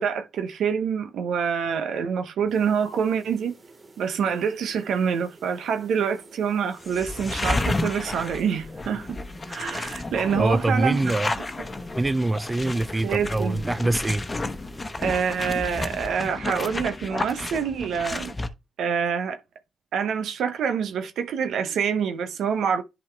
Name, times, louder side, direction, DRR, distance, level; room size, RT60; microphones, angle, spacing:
voice 1, 0.0-3.6 4.0-9.2 9.5-11.1 13.0-13.6 15.0-18.3 18.8-19.4 19.9-22.8, right 7 dB, 75° right, 0.7 m, -26 dB
sound 1, 2.5-16.2, right 3 dB, 40° right, 2.4 m, -51 dB
sound 2, 6.8-18.5, left 2 dB, 30° left, 1.0 m, -31 dB
voice 2, 10.4-11.3 12.0-14.2, right 2 dB, 25° right, 0.4 m, -24 dB
10.5 x 3.9 x 3.3 m
supercardioid pair, 55°, 0 cm